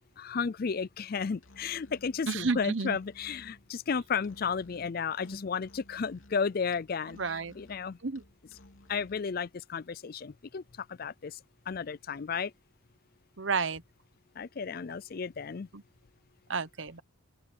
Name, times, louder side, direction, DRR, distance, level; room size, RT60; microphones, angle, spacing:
voice 1, 0.2-8.0 8.9-11.4 11.7-12.5 14.4-15.7, left 5 dB, 45° left, 0.4 m, -33 dB
Musical instrument, 1.4-9.3, left 1 dB, 70° left, 3.2 m, -55 dB
voice 2, 2.3-3.0 7.2-7.5 8.0-8.2 13.4-13.8 16.5-17.0, right 4 dB, 60° right, 0.9 m, -31 dB
open air
head